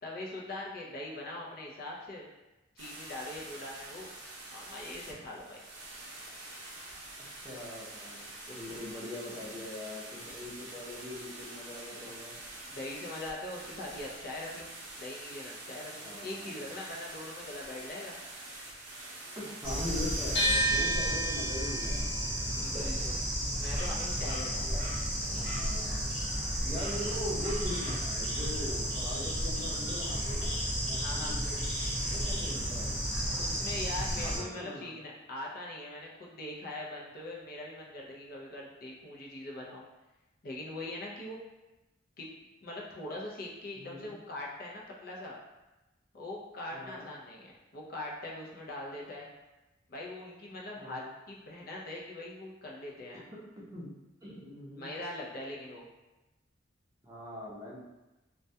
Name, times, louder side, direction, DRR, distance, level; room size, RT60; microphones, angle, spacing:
voice 1, 0.0-2.3 2.8-4.1 4.5-5.6 8.5-8.8 12.7-14.7 15.0-18.2 21.0-21.2 22.5-23.2 23.6-24.7 31.0-31.4 32.4-32.6 33.4-39.8 40.4-41.4 42.2-42.3 42.6-45.4 46.1-49.3 49.9-53.2 54.8-55.9, left 1 dB, 50° left, -3 dB, 0.4 m, -42 dB
sound 1, 2.8-20.6, right 2 dB, 70° right, 0.6 m, -46 dB
voice 2, 7.4-12.3 16.0-16.6 19.3-22.1 24.6-24.9 25.2-26.1 26.6-30.6 30.9-31.7 32.1-32.9 34.2-35.0 43.8-44.2 46.7-47.1 50.8-51.1 53.1-53.9 54.2-54.9 57.0-57.8, left 1 dB, 20° right, -5 dB, 0.6 m, -42 dB
Bird / Insect, 19.6-34.4, equal, 5° left, 1.0 m, -33 dB
sound 2, 20.3-26.4 26.6-27.9, right 1 dB, 90° left, 0.9 m, -34 dB
2.2 x 2.2 x 2.6 m, 1.0 s
head